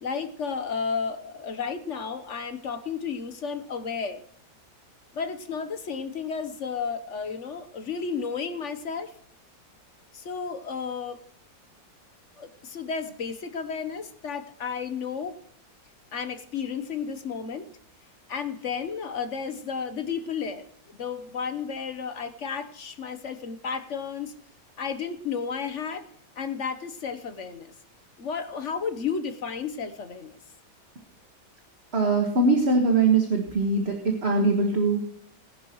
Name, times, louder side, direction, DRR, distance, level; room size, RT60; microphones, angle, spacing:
voice 1, 0.0-4.2 5.1-9.1 10.1-11.2 12.4-15.4 16.1-17.7 18.3-24.3 24.8-26.1 26.4-27.7 28.2-30.3, left 6 dB, 50° left, 10 dB, 1.1 m, -32 dB
voice 2, 31.9-35.1, right 3 dB, 35° right, 2 dB, 1.7 m, -22 dB
19.5 x 11.0 x 3.1 m, 0.62 s
omnidirectional pair, 2.0 m